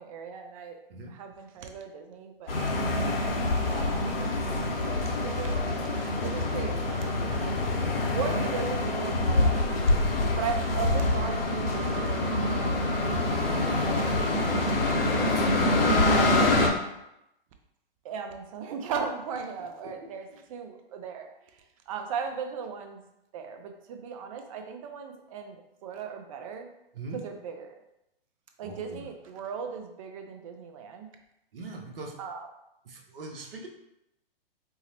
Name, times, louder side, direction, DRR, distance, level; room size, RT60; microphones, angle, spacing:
voice 1, 0.0-0.8 1.1-9.7 10.3-15.5 15.7-16.4 18.0-23.0 23.3-26.7 27.1-27.8 28.6-31.1 32.2-32.5, right 6 dB, 35° right, 5 dB, 0.5 m, -38 dB
sound 1, 2.5-16.7, left 2 dB, 70° left, 0.8 m, -26 dB
voice 2, 28.6-29.1 31.5-32.2 32.9-33.7, right 3 dB, 70° right, 0 dB, 0.8 m, -41 dB
4.5 x 2.0 x 2.9 m, 0.85 s
figure-of-eight pair, 120°, 30 cm